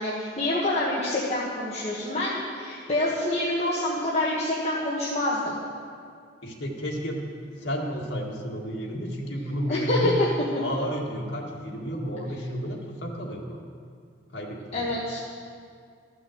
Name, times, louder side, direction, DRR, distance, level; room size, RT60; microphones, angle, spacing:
voice 1, 0.0-5.6 9.7-10.3 14.7-15.2, left 1 dB, 35° left, -6 dB, 1.4 m, -26 dB
voice 2, 6.4-7.2 7.5-10.2 10.6-13.6 14.3-14.8, equal, 85° left, -2 dB, 1.9 m, -31 dB
14.0 x 6.0 x 7.8 m, 2.2 s
head